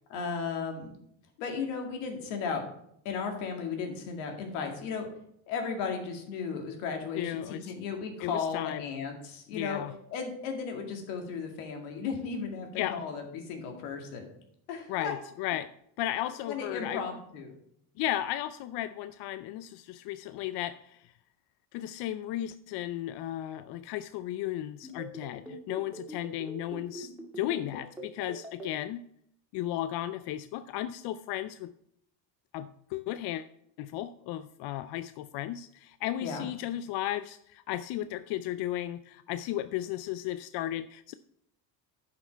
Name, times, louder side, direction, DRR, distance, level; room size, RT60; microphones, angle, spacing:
voice 1, 0.1-0.9 1.4-2.6 3.0-5.1 5.5-9.8 10.1-14.3 14.7-15.1 16.5-17.5 36.2-36.5, left 5 dB, 85° left, 3 dB, 2.3 m, -35 dB
voice 2, 7.1-7.7 8.2-8.9 9.5-9.9 12.8-13.0 14.9-15.7 16.0-17.0 18.0-21.1 21.7-29.0 29.5-31.7 32.5-33.5 33.8-41.1, left 13 dB, 60° left, 13 dB, 0.5 m, -35 dB
sound 1, 24.8-28.7, right 1 dB, 5° right, 2.0 m, -42 dB
10.5 x 5.9 x 4.5 m, 0.72 s
supercardioid pair, 110°, 46 cm